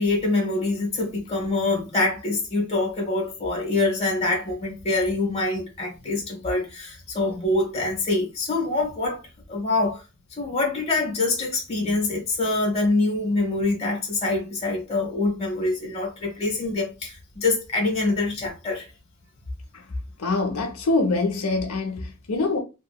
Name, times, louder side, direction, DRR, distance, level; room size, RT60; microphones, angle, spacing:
voice 1, 0.0-9.2 9.5-10.0 10.3-18.9, left 2 dB, 30° left, 1.1 m, -25 dB
voice 2, 20.2-22.6, left 3 dB, 75° left, 0.7 m, -24 dB
2.9 x 2.8 x 2.3 m
head